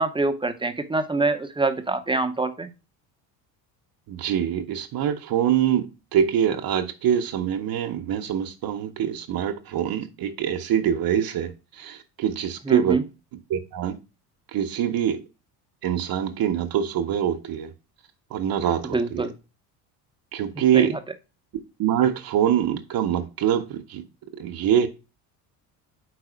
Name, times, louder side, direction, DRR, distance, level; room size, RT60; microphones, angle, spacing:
voice 1, 0.0-2.7 12.7-13.0 18.9-19.3 20.7-21.0, right 3 dB, 10° right, 0.6 m, -25 dB
voice 2, 4.1-5.9 6.1-13.0 13.5-14.0 14.5-15.2 15.8-17.7 18.3-19.3 20.3-20.9 21.8-24.0 24.4-24.9, right 9 dB, 50° right, 0.8 m, -24 dB
4.8 x 4.0 x 5.0 m
supercardioid pair, 85°, 45 cm